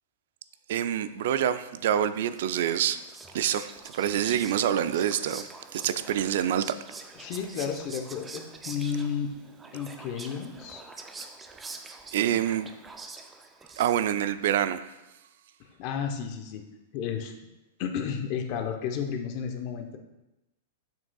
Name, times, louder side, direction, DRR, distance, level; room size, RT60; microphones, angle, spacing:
voice 1, 0.7-3.0 3.3-6.6 12.1-12.7 13.8-14.8, right 10 dB, 65° right, 13 dB, 0.4 m, -26 dB
Whispering, 2.3-14.3, right 3 dB, 15° right, 0.5 m, -45 dB
voice 2, 7.2-9.3 9.7-10.8 15.8-16.6 16.9-17.3 17.8-20.0, left 7 dB, 50° left, 5 dB, 0.8 m, -32 dB
7.2 x 6.1 x 2.3 m, 0.98 s
hypercardioid pair, 125°, 0 cm